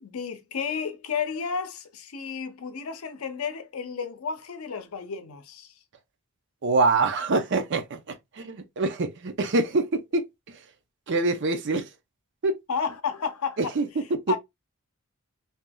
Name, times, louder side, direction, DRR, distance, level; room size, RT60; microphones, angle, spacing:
voice 1, 0.0-5.7 12.7-13.6 14.3-14.4, left 6 dB, 75° left, 0.6 m, -32 dB
voice 2, 6.6-10.6 11.1-11.9 12.4-12.6 13.6-14.4, right 3 dB, 55° right, 0.6 m, -25 dB
3.4 x 2.7 x 2.2 m
head